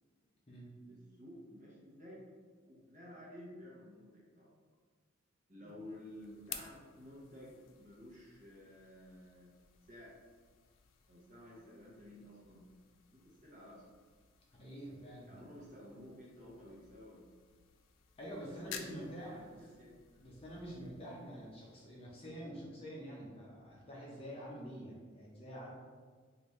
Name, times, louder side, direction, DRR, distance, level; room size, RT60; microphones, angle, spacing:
voice 1, 0.9-2.3 2.6-4.5 5.5-9.5 9.8-10.1 11.1-12.7 13.1-13.8 15.3-17.2 18.4-19.9 20.1-20.2, left 1 dB, 35° right, -5 dB, 0.8 m, -53 dB
sound 1, 5.6-22.6, left 8 dB, 65° left, 0.3 m, -55 dB
voice 2, 14.5-15.3 18.2-19.6 20.2-25.7, equal, 30° left, -5 dB, 0.6 m, -47 dB
3.2 x 2.5 x 3.1 m, 1.5 s
head